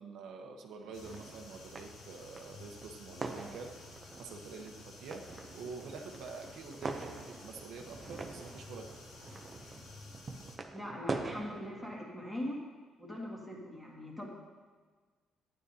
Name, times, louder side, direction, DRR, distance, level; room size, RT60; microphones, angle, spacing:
voice 1, 0.0-3.9 4.2-5.2 5.5-8.9, right 4 dB, 75° right, 3 dB, 0.9 m, -47 dB
sound 1, 0.8-11.9, right 3 dB, 20° right, 0.5 m, -44 dB
sound 2, 0.9-10.6, left 3 dB, 85° left, 1.6 m, -53 dB
voice 2, 10.7-12.6 13.0-14.3, left 1 dB, 10° left, -3 dB, 1.8 m, -41 dB
12.0 x 9.7 x 2.8 m, 1.4 s
cardioid pair, 170°, 0 cm